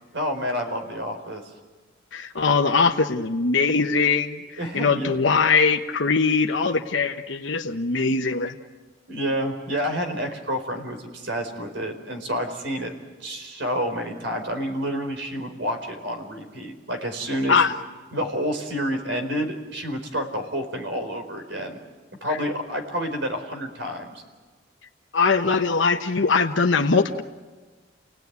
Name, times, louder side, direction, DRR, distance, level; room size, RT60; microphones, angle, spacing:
voice 1, 0.1-1.4 4.6-5.2 9.1-12.9 13.2-17.6 18.1-21.8 22.2-24.2, equal, 70° right, 5 dB, 4.4 m, -29 dB
voice 2, 2.1-8.5 17.5-17.7 25.1-27.2, left 4 dB, 75° left, 4 dB, 1.1 m, -21 dB
29.5 x 18.5 x 9.5 m, 1.3 s
head